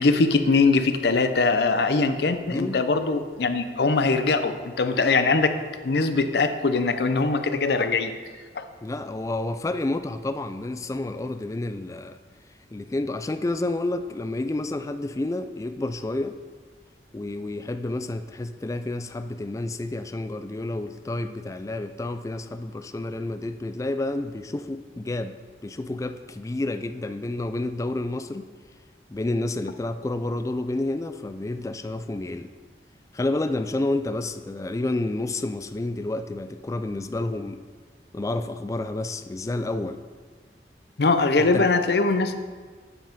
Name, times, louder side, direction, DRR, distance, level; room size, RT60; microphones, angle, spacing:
voice 1, 0.0-5.5 5.8-8.1 8.6-8.7 41.0-42.4, left 3 dB, 65° left, 9 dB, 0.6 m, -22 dB
voice 2, 2.5-2.8 8.8-12.2 12.7-16.4 17.1-25.4 25.6-28.5 29.1-32.5 33.1-37.6 38.1-40.0 41.4-41.7, left 2 dB, 20° left, 10 dB, 0.3 m, -30 dB
8.6 x 5.5 x 5.2 m, 1.5 s
head